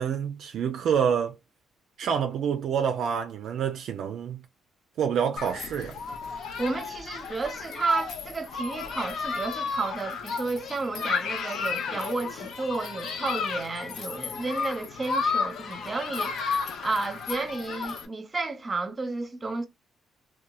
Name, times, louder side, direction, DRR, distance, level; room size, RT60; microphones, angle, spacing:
voice 1, 0.0-1.4 2.0-4.4 5.0-6.0, right 7 dB, 70° right, 0.3 m, -27 dB
Human group actions, 5.4-18.1, left 5 dB, 75° left, 0.6 m, -33 dB
voice 2, 6.6-16.3 16.8-19.7, right 3 dB, 30° right, 0.7 m, -32 dB
2.8 x 2.2 x 2.3 m
cardioid pair, 90°, 0 cm